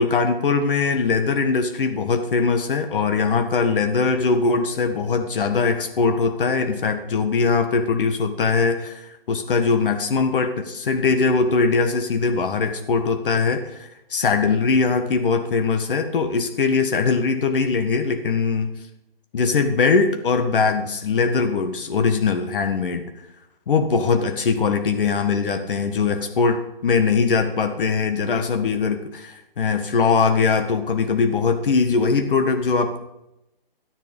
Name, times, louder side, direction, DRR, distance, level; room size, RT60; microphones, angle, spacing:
voice 1, 0.0-18.7 19.3-23.0 23.7-33.0, left 4 dB, 65° left, 6 dB, 1.5 m, -21 dB
12.5 x 10.5 x 5.3 m, 0.89 s
hypercardioid pair, 150°, 29 cm